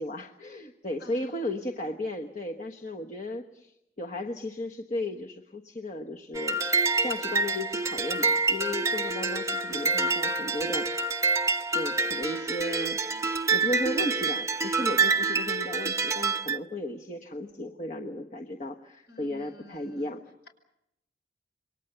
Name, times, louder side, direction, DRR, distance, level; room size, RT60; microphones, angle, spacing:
voice 1, 0.0-6.6 7.0-11.2 11.7-20.2, left 1 dB, 40° left, 2 dB, 1.3 m, -35 dB
sound 1, 6.3-16.6, right 3 dB, 15° right, 0.9 m, -27 dB
voice 2, 19.1-20.1, left 2 dB, 60° left, 5 dB, 5.7 m, -50 dB
28.5 x 23.5 x 6.9 m, 0.84 s
head